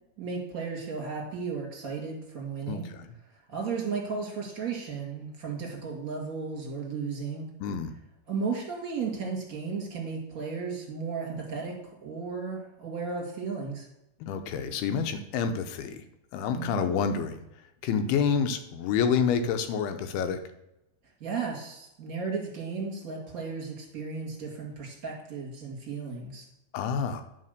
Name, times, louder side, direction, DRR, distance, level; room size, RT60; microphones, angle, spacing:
voice 1, 0.2-2.9 3.3-7.5 8.3-13.9 16.5-16.9 21.2-26.4, right 5 dB, 30° right, -1 dB, 1.9 m, -34 dB
voice 2, 2.7-3.1 7.6-7.9 14.2-16.0 16.3-17.4 17.8-20.4 26.7-27.2, left 6 dB, 85° left, 8 dB, 2.8 m, -28 dB
10.0 x 4.5 x 6.6 m, 0.86 s
omnidirectional pair, 4.4 m